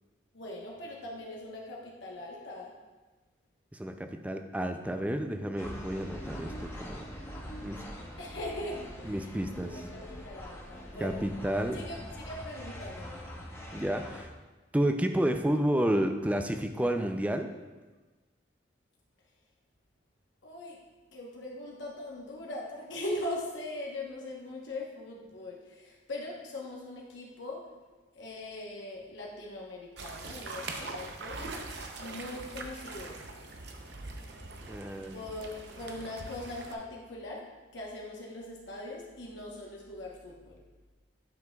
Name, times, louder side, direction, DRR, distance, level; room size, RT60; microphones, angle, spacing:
voice 1, 0.3-2.7 8.2-11.2 11.7-13.3 20.4-20.8 21.1-27.7 28.1-31.4 32.0-33.2 35.1-37.5 37.7-40.6, left 1 dB, 70° left, -3 dB, 1.1 m, -41 dB
voice 2, 3.7-7.1 7.6-7.8 9.1-9.8 11.0-11.8 13.7-14.3 14.7-17.5 34.6-35.2, right 1 dB, 5° right, 6 dB, 0.3 m, -30 dB
sound 1, 5.6-14.2, equal, 15° left, 0.9 m, -43 dB
sound 2, 30.0-36.7, right 3 dB, 60° right, 0.7 m, -42 dB
10.5 x 5.9 x 2.3 m, 1.2 s
head